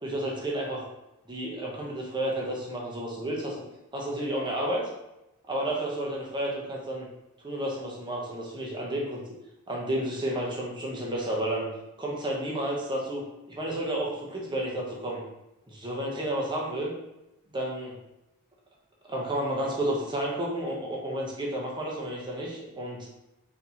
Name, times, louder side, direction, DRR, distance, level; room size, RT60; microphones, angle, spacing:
voice 1, 0.0-0.8 1.3-3.6 3.9-4.8 5.5-7.1 7.4-9.2 9.7-11.7 12.0-13.2 13.5-15.2 15.7-16.9 17.5-17.9 19.1-23.1, right 1 dB, 20° right, -3 dB, 1.0 m, -31 dB
4.2 x 4.2 x 3.0 m, 0.92 s
head